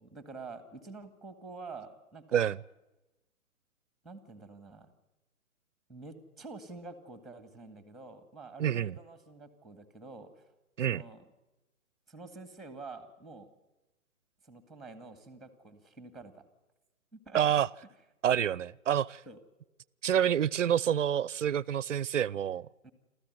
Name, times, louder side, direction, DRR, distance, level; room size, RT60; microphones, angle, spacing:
voice 1, 0.0-2.4 4.0-4.9 5.9-10.5 10.9-11.3 12.1-13.5 14.4-16.4 17.1-17.4 19.3-19.4 22.8-22.9, right 3 dB, ahead, 2.0 m, -48 dB
voice 2, 8.6-9.0 10.8-11.0 17.3-17.7 18.2-19.2 20.0-22.7, right 9 dB, 60° right, 0.7 m, -28 dB
27.0 x 14.5 x 9.5 m
figure-of-eight pair, 135°, 42 cm